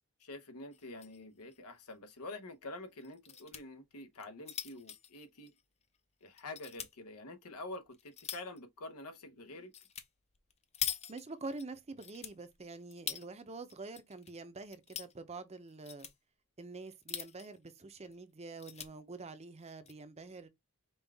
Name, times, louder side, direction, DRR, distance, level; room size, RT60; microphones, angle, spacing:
voice 1, 0.2-5.5 6.2-9.7, left 2 dB, 90° left, 0.9 m, -47 dB
sound 1, 0.7-1.2 1.5-1.6 1.9-2.0 3.0-3.6 4.1-6.0 6.4-6.9 7.5-8.6 9.7-10.1 10.3-11.6 12.0-13.3 13.7-14.3 14.6-15.1 15.7-16.1 16.9-17.6 18.0-18.1 18.4-18.9 19.6-19.9, left 9 dB, 30° left, 0.5 m, -43 dB
voice 2, 11.1-16.1 16.6-20.5, right 3 dB, 30° right, 0.6 m, -46 dB
5.4 x 2.4 x 3.4 m
head